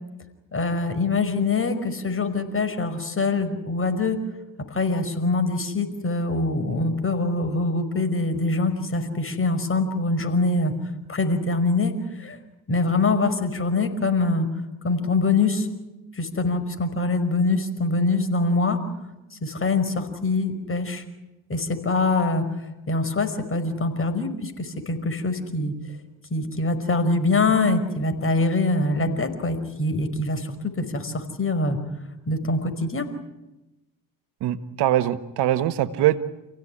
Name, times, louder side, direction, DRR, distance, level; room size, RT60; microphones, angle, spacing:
voice 1, 0.5-4.2 4.7-10.7 11.1-12.4 12.7-14.5 14.8-15.7 16.2-18.8 19.3-21.0 21.5-25.7 26.3-31.8 32.3-33.1, left 3 dB, 30° left, 8 dB, 5.3 m, -24 dB
voice 2, 34.4-36.2, right 13 dB, 80° right, 12 dB, 1.4 m, -22 dB
29.5 x 17.0 x 10.0 m, 1.0 s
supercardioid pair, 75°, 40 cm